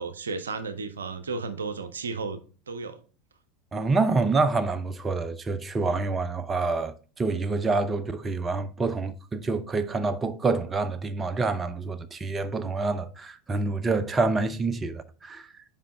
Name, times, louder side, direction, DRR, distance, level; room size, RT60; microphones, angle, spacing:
voice 1, 0.0-2.4 2.7-3.0, right 4 dB, 80° right, 0.5 m, -33 dB
voice 2, 3.7-15.5, right 3 dB, 20° right, 0.5 m, -27 dB
5.5 x 4.8 x 3.6 m
figure-of-eight pair, 80°, 0 cm